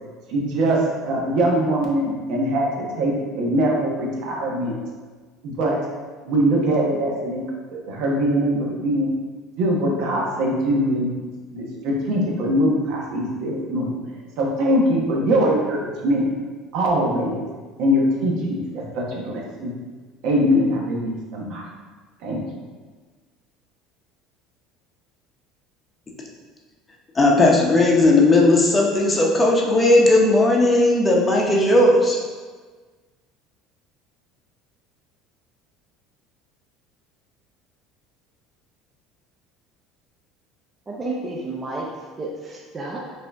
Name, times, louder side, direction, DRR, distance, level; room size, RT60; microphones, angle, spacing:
voice 1, 0.3-4.8 5.4-5.8 6.2-7.4 7.9-9.1 9.6-11.2 11.5-13.9 14.4-16.3 16.7-17.4 17.8-19.7 20.2-21.6 22.2-22.4, equal, 65° right, -2 dB, 1.0 m, -22 dB
voice 2, 27.1-32.2, left 2 dB, 20° left, -1 dB, 0.8 m, -16 dB
voice 3, 40.9-43.1, right 2 dB, 20° right, -3 dB, 0.6 m, -31 dB
5.3 x 2.7 x 3.5 m, 1.4 s
supercardioid pair, 120°, 0 cm